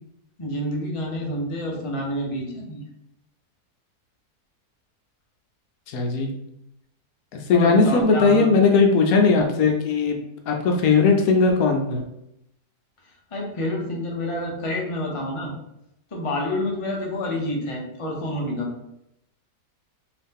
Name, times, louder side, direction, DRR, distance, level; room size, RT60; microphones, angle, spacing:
voice 1, 0.4-2.8 7.5-8.5 13.3-15.5 16.1-18.7, left 1 dB, 50° left, -1 dB, 0.4 m, -28 dB
voice 2, 5.9-6.3 7.3-10.2 10.5-12.1, left 4 dB, 70° left, 3 dB, 1.0 m, -18 dB
3.0 x 2.8 x 3.5 m, 0.83 s
omnidirectional pair, 1.7 m